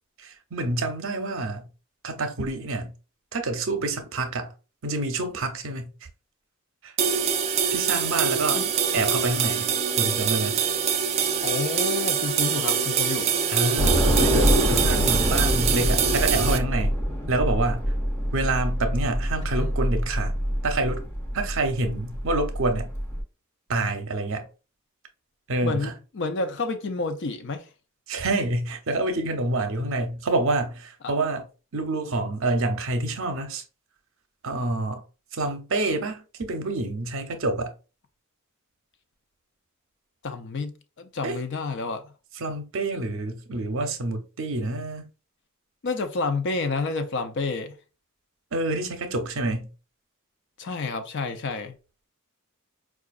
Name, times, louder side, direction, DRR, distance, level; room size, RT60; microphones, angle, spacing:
voice 1, 0.2-1.7 2.0-2.9 3.3-4.5 4.8-5.9 6.8-6.9 7.7-8.6 8.9-9.7 10.0-10.6 13.5-16.9 17.3-17.8 18.3-20.3 20.6-21.0 21.3-22.9 23.7-24.5 25.5-25.9 28.1-31.5 31.7-33.6 34.4-35.0 35.3-37.7 41.2-41.4 42.4-45.1 48.5-49.7, right 2 dB, 65° right, 0.7 m, -27 dB
sound 1, 7.0-16.6, right 7 dB, 30° right, 0.4 m, -24 dB
voice 2, 11.4-13.3 19.6-19.7 25.6-27.7 40.2-42.1 45.8-47.8 50.6-51.7, left 3 dB, 55° left, 0.5 m, -29 dB
Train / Subway metro underground, 13.8-23.2, equal, 10° left, 0.6 m, -25 dB
4.8 x 2.4 x 2.4 m
head